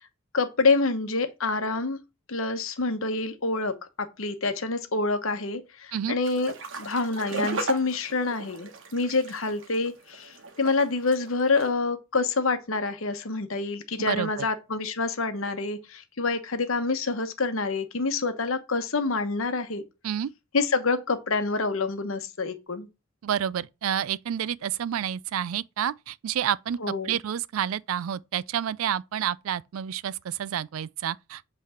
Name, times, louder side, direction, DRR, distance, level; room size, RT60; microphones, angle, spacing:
voice 1, 0.3-2.0 2.3-19.8 20.5-22.9 26.8-27.2, left 3 dB, 75° left, 1.0 m, -27 dB
sound 1, 6.2-11.7, right 2 dB, 65° right, 1.3 m, -36 dB
voice 2, 14.1-14.5 20.0-20.3 23.2-26.8 27.0-31.4, right 9 dB, 80° right, 0.4 m, -29 dB
7.9 x 3.4 x 4.9 m
head